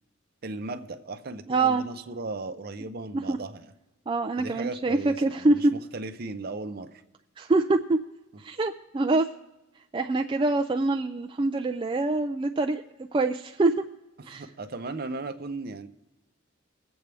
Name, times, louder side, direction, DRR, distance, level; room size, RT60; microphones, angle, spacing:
voice 1, 0.4-3.7 4.4-7.0 14.2-15.9, right 3 dB, 50° right, 8 dB, 0.7 m, -36 dB
voice 2, 1.5-1.8 3.1-3.4 4.1-5.7 7.4-8.0 8.4-9.3 9.9-12.8 13.1-13.8 14.3-14.5, right 2 dB, 25° right, 3 dB, 0.3 m, -25 dB
21.0 x 7.9 x 3.4 m, 0.98 s
head